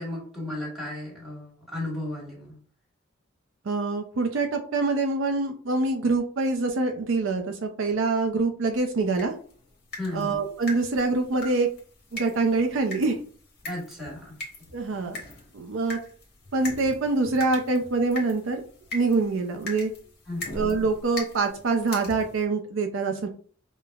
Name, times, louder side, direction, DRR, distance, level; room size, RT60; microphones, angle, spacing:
voice 1, 0.0-2.5 10.0-10.4 13.6-14.4 20.3-20.4, left 1 dB, ahead, -3 dB, 1.6 m, -34 dB
voice 2, 3.7-9.3 10.1-11.7 12.1-13.2 14.7-15.2 15.5-16.0 16.5-18.6 18.9-19.9 20.5-23.3, right 3 dB, 70° right, 4 dB, 0.5 m, -25 dB
sound 1, 9.1-22.4, left 1 dB, 55° left, 1.1 m, -41 dB
5.0 x 2.1 x 2.3 m, 0.43 s
head